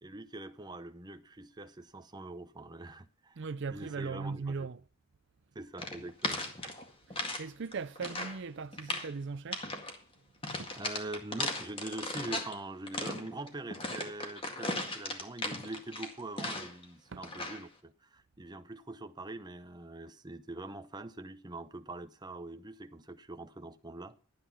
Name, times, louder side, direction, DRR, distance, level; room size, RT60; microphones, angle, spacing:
voice 1, 0.0-4.7 5.5-6.7 10.7-24.2, right 2 dB, 20° right, 0.8 m, -44 dB
voice 2, 3.4-4.8 7.2-9.7 10.6-10.8 17.1-17.2, right 4 dB, 55° right, 0.5 m, -39 dB
sound 1, 5.8-7.4 7.7-8.4 8.7-9.1 9.5-10.0 10.4-12.5 12.9-16.8 17.2-17.7, left 2 dB, 25° left, 2.0 m, -37 dB
12.5 x 9.3 x 5.7 m
head